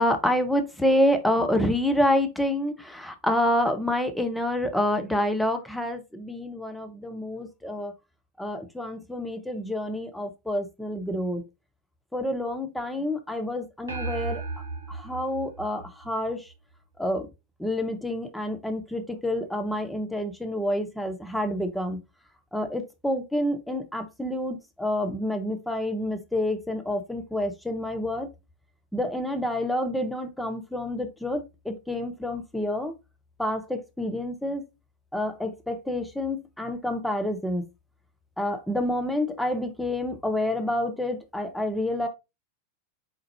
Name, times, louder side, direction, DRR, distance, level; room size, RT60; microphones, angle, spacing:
voice 1, 0.0-7.9 8.4-11.4 12.1-14.4 14.9-16.5 17.0-17.3 17.6-22.0 22.5-28.3 28.9-32.9 33.4-34.6 35.1-37.6 38.4-42.1, left 1 dB, 5° left, 0.8 m, -28 dB
sound 1, 13.9-16.5, right 3 dB, 75° right, 0.9 m, -35 dB
4.4 x 3.8 x 2.8 m
figure-of-eight pair, 90°, 0 cm